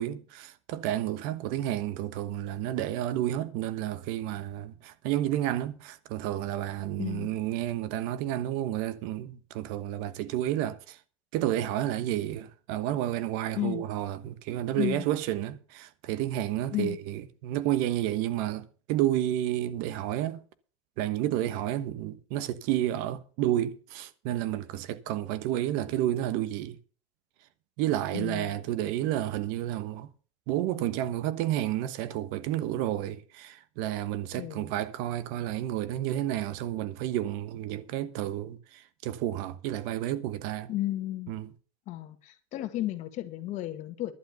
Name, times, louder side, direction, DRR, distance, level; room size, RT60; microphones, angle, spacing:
voice 1, 0.0-11.0 11.3-20.4 21.0-26.8 27.8-30.1 30.5-40.7 41.3-41.5, right 13 dB, 65° right, 1.2 m, -31 dB
voice 2, 7.0-7.3 13.6-13.8 14.8-15.0 16.7-17.0 28.1-28.6 34.3-34.7 40.7-41.3 41.9-44.1, left 15 dB, 50° left, 1.8 m, -33 dB
11.5 x 7.9 x 6.9 m
supercardioid pair, 135°, 16 cm